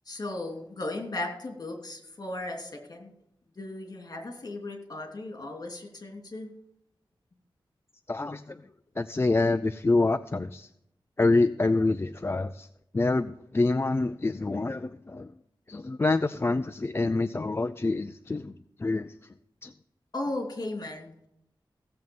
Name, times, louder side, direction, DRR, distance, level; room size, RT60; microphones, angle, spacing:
voice 1, 0.1-3.1 3.6-6.5 20.1-21.3, left 2 dB, 45° left, 2 dB, 3.0 m, -36 dB
voice 2, 8.1-8.6 9.0-10.7 11.2-12.7 12.9-15.3 15.7-18.5 18.8-19.1 19.6-19.7, left 3 dB, 25° left, 10 dB, 0.5 m, -26 dB
16.5 x 7.6 x 5.4 m, 0.76 s
wide cardioid pair, 90°, 9 cm